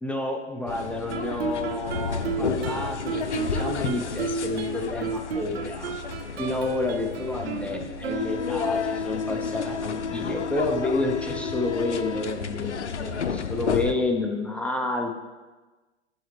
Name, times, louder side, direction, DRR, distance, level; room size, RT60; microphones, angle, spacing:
voice 1, 0.0-5.9 6.3-15.1, left 2 dB, 5° left, 2 dB, 0.4 m, -30 dB
sound 1, 0.7-13.9, left 5 dB, 85° left, 0.5 m, -31 dB
Guitar, 1.1-8.8, right 5 dB, 65° right, 0.7 m, -33 dB
11.5 x 4.0 x 3.4 m, 1.2 s
figure-of-eight pair, 95°, 34 cm